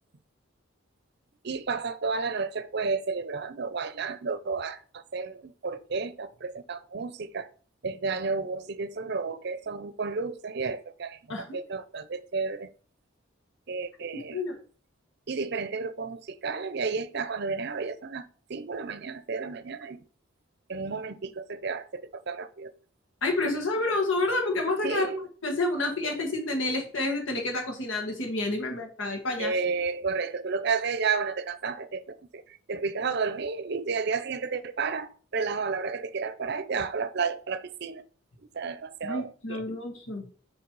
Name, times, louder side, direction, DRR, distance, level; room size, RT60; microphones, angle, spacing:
voice 1, 1.4-7.5 7.8-12.7 13.7-14.4 15.3-20.0 20.7-22.7 24.8-25.3 29.4-38.0 38.5-39.6, right 4 dB, 55° right, 0.6 m, -32 dB
voice 2, 23.2-25.1 25.4-29.5 39.0-40.3, left 2 dB, 75° left, 1.7 m, -29 dB
8.0 x 3.3 x 4.7 m
head